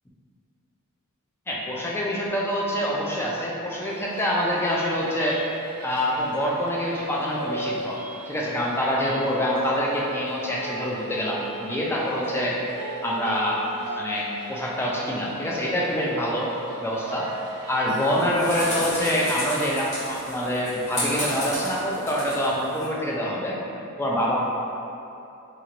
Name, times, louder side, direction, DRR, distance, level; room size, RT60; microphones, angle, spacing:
voice 1, 1.5-5.4 5.8-8.0 8.3-12.6 13.0-13.7 14.0-17.3 17.7-23.6 24.0-24.4, equal, 10° left, -4 dB, 0.3 m, -26 dB
sound 1, 3.8-18.9, right 1 dB, 75° right, 0.4 m, -37 dB
sound 2, 17.9-22.9, left 1 dB, 30° left, 0.9 m, -32 dB
2.8 x 2.5 x 2.9 m, 2.8 s
head